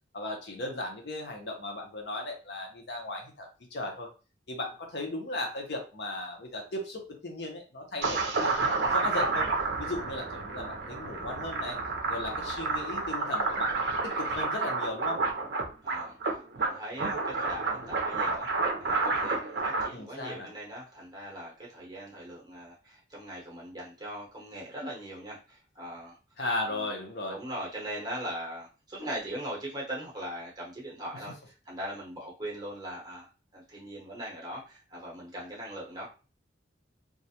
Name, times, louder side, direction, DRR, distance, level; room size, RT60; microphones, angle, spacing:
voice 1, 0.1-4.1 4.5-9.5 9.8-11.8 12.1-15.2 19.9-20.5 26.4-27.4, left 2 dB, 60° left, 2 dB, 0.6 m, -36 dB
sound 1, 8.0-19.9, right 3 dB, 60° right, 0.5 m, -30 dB
voice 2, 15.8-18.5 18.8-26.1 26.7-26.8 27.3-36.1, right 1 dB, 20° right, -3 dB, 0.9 m, -40 dB
2.4 x 2.1 x 2.7 m, 0.33 s
head